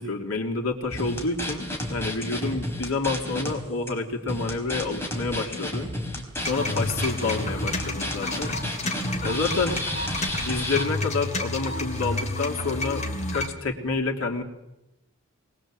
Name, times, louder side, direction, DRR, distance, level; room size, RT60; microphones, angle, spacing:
voice 1, 0.0-5.9 6.5-8.6 9.2-9.8 10.4-14.4, left 3 dB, 80° left, 1 dB, 3.3 m, -28 dB
sound 1, 0.9-3.5 3.9-4.0 4.3-10.8, left 1 dB, 10° left, 4.1 m, -31 dB
sound 2, 6.4-13.5, left 2 dB, 35° left, 2.8 m, -31 dB
22.0 x 21.5 x 7.8 m, 0.93 s
head